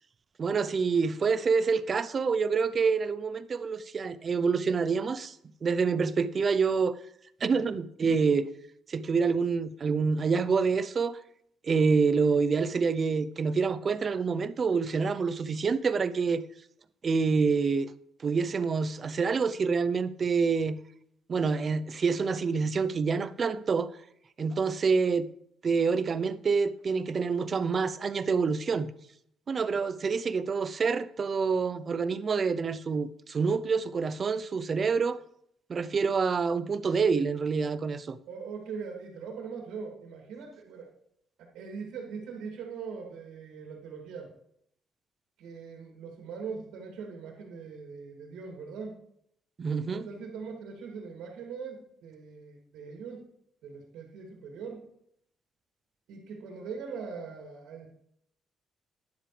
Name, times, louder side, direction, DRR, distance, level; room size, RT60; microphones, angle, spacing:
voice 1, 0.4-5.3 5.6-7.0 7.4-8.5 8.9-11.2 11.6-16.4 17.0-17.9 18.2-20.8 21.3-23.9 24.4-25.3 25.6-28.9 29.5-35.2 35.7-38.2 49.6-50.1, right 5 dB, 45° right, 0.7 m, -27 dB
voice 2, 38.3-40.9 41.5-44.3 45.4-49.0 49.9-53.3 53.6-54.9 56.1-57.9, right 5 dB, 90° right, 2.6 m, -41 dB
12.0 x 10.5 x 3.4 m
cardioid pair, 90°, 0 cm